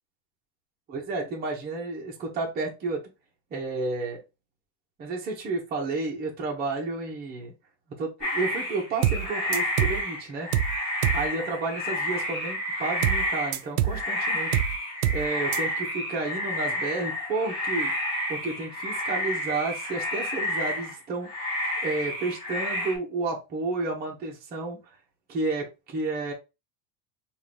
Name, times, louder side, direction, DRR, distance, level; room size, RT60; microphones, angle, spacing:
voice 1, 0.9-3.0 3.5-4.2 5.0-7.5 8.0-10.5 11.1-14.6 15.1-17.9 18.3-21.3 21.8-24.8 25.3-26.3, right 3 dB, 20° right, -2 dB, 0.9 m, -31 dB
sound 1, 8.2-21.0 21.2-23.0, left 1 dB, 30° left, 2.4 m, -30 dB
sound 2, 9.0-9.3 9.5-10.0 10.5-10.8 11.0-11.3 13.0-13.3 13.5-14.0 14.5-14.8 15.0-15.3 15.5-15.6, right 11 dB, 70° right, 0.6 m, -25 dB
3.7 x 2.6 x 3.4 m, 0.26 s
supercardioid pair, 165°, 45 cm